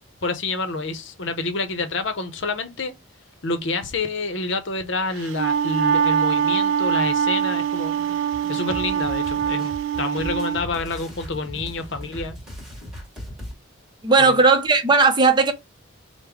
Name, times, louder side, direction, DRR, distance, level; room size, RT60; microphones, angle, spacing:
voice 1, 0.2-2.9 3.4-8.2 8.5-12.4 14.2-14.4, left 3 dB, 60° left, 0.7 m, -28 dB
Wind instrument woodwind instrument, 5.2-10.6, right 8 dB, 65° right, 0.3 m, -23 dB
sound 1, 8.0-13.5, equal, 5° right, 1.7 m, -38 dB
voice 2, 14.0-15.5, right 4 dB, 20° right, 0.6 m, -16 dB
5.3 x 2.1 x 4.7 m
head